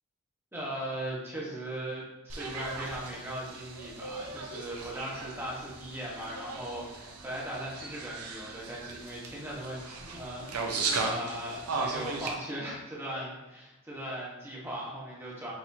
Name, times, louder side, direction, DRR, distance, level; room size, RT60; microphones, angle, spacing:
voice 1, 0.5-15.5, right 1 dB, 10° right, -6 dB, 1.3 m, -39 dB
sound 1, 2.3-12.3, right 3 dB, 85° right, 0.7 m, -37 dB
6.0 x 2.9 x 2.8 m, 1.0 s
head